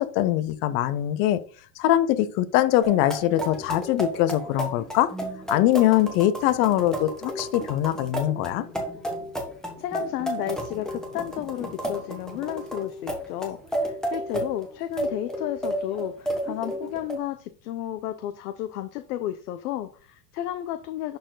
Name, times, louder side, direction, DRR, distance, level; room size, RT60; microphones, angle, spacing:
voice 1, 0.0-1.4 1.8-5.1 5.5-8.6, left 13 dB, 30° left, 14 dB, 0.4 m, -22 dB
sound 1, 2.8-17.2, right 1 dB, ahead, 1.3 m, -32 dB
voice 2, 9.8-21.2, left 12 dB, 70° left, 9 dB, 0.9 m, -32 dB
11.0 x 4.4 x 3.9 m, 0.42 s
supercardioid pair, 155°, 48 cm